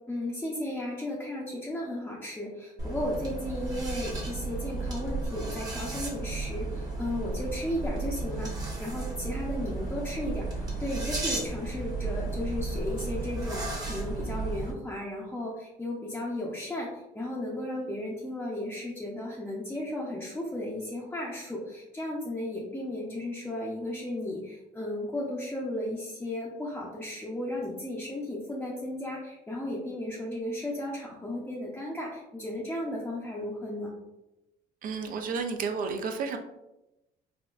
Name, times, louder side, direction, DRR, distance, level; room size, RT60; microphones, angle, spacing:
voice 1, 0.1-8.5 8.8-33.9, left 1 dB, 10° left, -4 dB, 0.6 m, -35 dB
sound 1, 2.8-14.7, right 3 dB, 20° right, 0.9 m, -34 dB
voice 2, 34.8-36.4, right 5 dB, 55° right, 6 dB, 0.4 m, -31 dB
3.8 x 2.2 x 2.3 m, 0.94 s
cardioid pair, 110°, 17 cm